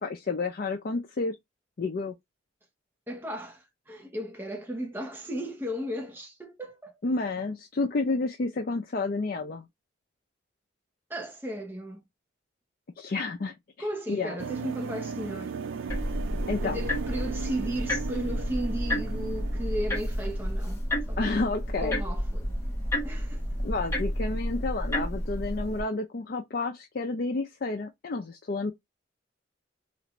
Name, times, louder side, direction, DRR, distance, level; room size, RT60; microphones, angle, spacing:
voice 1, 0.0-1.4 1.8-2.1 7.0-9.6 13.0-14.4 16.5-16.8 21.2-22.0 23.6-28.7, left 3 dB, 50° left, 0.4 m, -30 dB
voice 2, 3.1-7.0 7.4-7.5 11.1-12.0 13.8-15.5 16.6-21.4 21.8-22.5 22.8-23.5, equal, 10° right, 0.7 m, -35 dB
sound 1, 14.4-20.6, right 6 dB, 85° right, 0.3 m, -37 dB
sound 2, 15.9-25.8, equal, 15° left, 1.0 m, -31 dB
3.2 x 2.5 x 2.9 m
head